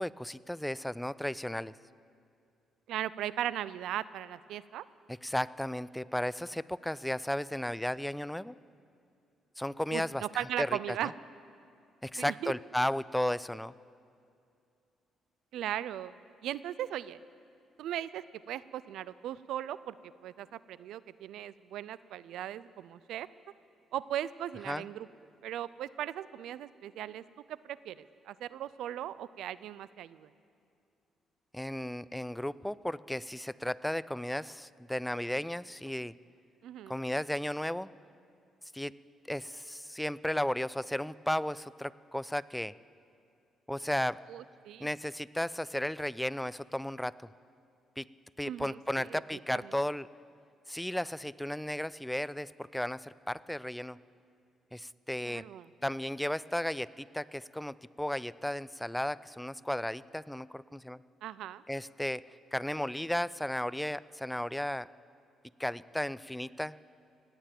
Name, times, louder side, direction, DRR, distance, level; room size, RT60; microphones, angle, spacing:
voice 1, 0.0-1.7 5.1-8.5 9.6-11.1 12.0-13.7 24.7-24.9 31.5-36.1 36.9-37.9 38.7-38.9 39.3-42.7 43.7-44.2 44.8-47.1 48.0-48.1 48.4-50.1 50.7-54.0 54.7-55.4 55.8-61.0 61.7-62.2 62.5-64.9 65.6-66.7, left 1 dB, 5° left, 19 dB, 0.3 m, -34 dB
voice 2, 2.9-4.8 9.9-11.1 12.2-12.5 15.5-16.1 16.4-17.2 17.8-20.0 20.2-23.3 23.9-25.1 25.4-30.3 36.6-37.0 44.3-44.9 48.5-49.7 55.2-55.7 61.2-61.6, right 11 dB, 85° right, 18 dB, 0.4 m, -38 dB
17.0 x 9.0 x 9.1 m, 2.4 s
cardioid pair, 90°, 0 cm